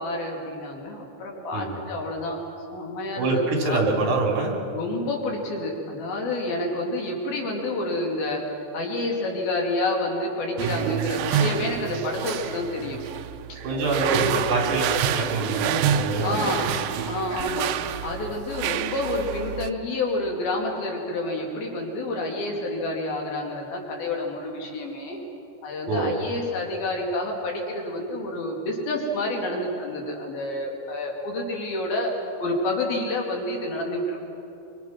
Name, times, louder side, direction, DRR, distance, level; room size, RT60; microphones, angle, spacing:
voice 1, 0.0-2.4 2.7-3.8 4.7-8.4 8.7-13.0 13.5-13.6 14.0-14.6 16.2-17.8 18.0-25.2 25.6-32.1 32.4-34.2, left 1 dB, 85° left, 0 dB, 4.7 m, -29 dB
voice 2, 3.2-4.6 13.6-16.5 25.9-26.1, right 3 dB, 60° right, 0 dB, 5.0 m, -25 dB
sound 1, 10.6-19.7, right 9 dB, 75° right, 2.0 m, -28 dB
26.5 x 24.5 x 6.1 m, 2.9 s
omnidirectional pair, 4.1 m